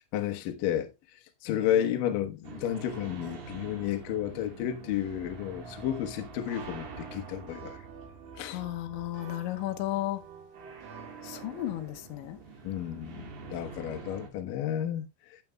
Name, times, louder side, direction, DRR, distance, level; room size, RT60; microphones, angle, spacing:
voice 1, 0.1-0.9 1.4-7.8 8.4-8.6 12.6-15.4, left 10 dB, 70° left, 2.3 m, -32 dB
sound 1, 2.4-14.3, right 4 dB, 50° right, 3.0 m, -46 dB
sound 2, 6.5-11.8, right 6 dB, 75° right, 5.3 m, -49 dB
voice 2, 8.4-10.2 11.2-12.4, left 15 dB, 85° left, 3.3 m, -34 dB
11.5 x 9.1 x 2.3 m
omnidirectional pair, 5.2 m